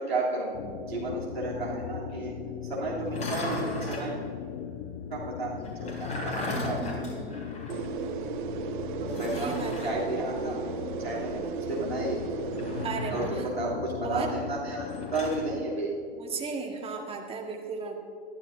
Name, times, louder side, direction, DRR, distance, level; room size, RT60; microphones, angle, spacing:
voice 1, 0.0-2.4 2.7-4.1 5.1-6.9 9.0-10.6 11.0-12.2 13.1-15.9, right 2 dB, 80° right, -5 dB, 3.0 m, -32 dB
sound 1, 0.5-15.7, left 10 dB, 45° left, 0.8 m, -38 dB
sound 2, 3.0-4.1 5.6-7.9 8.2-8.3 9.1-10.0 12.5-13.5 14.8-15.4, left 1 dB, 25° left, 3.1 m, -36 dB
voice 2, 6.5-7.5 9.2-9.9 12.8-13.5 14.0-14.3 16.2-17.9, right 5 dB, 20° right, 1 dB, 1.7 m, -35 dB
sound 3, 7.7-12.9, right 8 dB, 50° right, 0.8 m, -35 dB
20.5 x 12.0 x 2.7 m, 2.3 s
figure-of-eight pair, 95°, 31 cm